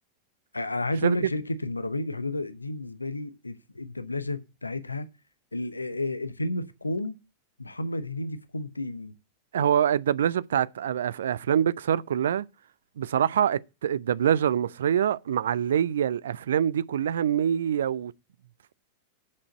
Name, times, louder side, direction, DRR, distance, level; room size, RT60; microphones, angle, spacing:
voice 1, 0.5-5.1 5.5-7.2 7.6-9.1, left 2 dB, 80° left, 0.8 m, -31 dB
voice 2, 9.5-12.4 13.0-18.1, right 9 dB, 65° right, 0.4 m, -25 dB
7.5 x 6.3 x 7.6 m
figure-of-eight pair, 90°, 0 cm